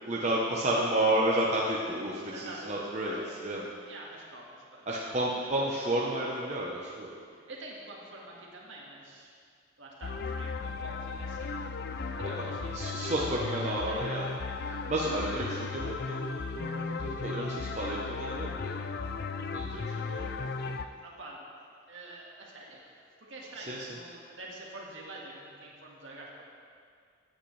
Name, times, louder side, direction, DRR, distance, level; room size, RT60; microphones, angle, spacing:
voice 1, 0.1-3.2 3.4-3.6 4.9-7.1 12.4-12.5 12.7-14.3 14.7-18.7 19.5-20.3 20.6-20.7 23.6-23.9, right 1 dB, 35° right, -4 dB, 0.9 m, -31 dB
voice 2, 2.3-3.3 3.9-5.5 7.5-9.3 9.8-11.9 12.2-14.2 19.6-19.7 20.5-21.5 21.9-22.9 23.2-26.5, right 2 dB, 65° right, -3 dB, 1.9 m, -46 dB
Funky Pixel Melody Loop, 10.0-20.9, left 4 dB, 50° left, 0.4 m, -36 dB
14.5 x 8.7 x 3.3 m, 2.2 s
head